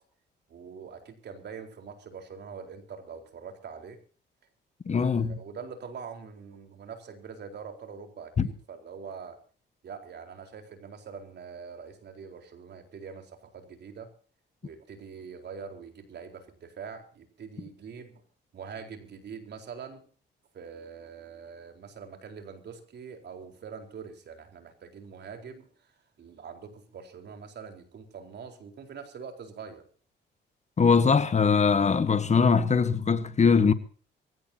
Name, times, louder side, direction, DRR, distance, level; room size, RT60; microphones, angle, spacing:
voice 1, 0.5-4.0 4.8-9.4 9.8-14.1 14.6-18.2 18.5-20.0 20.5-29.9, right 6 dB, 60° right, 4.2 m, -44 dB
voice 2, 4.9-5.4 8.4-8.5 30.8-33.7, left 5 dB, 35° left, 1.3 m, -22 dB
23.5 x 16.0 x 2.8 m
cardioid pair, 90°, 20 cm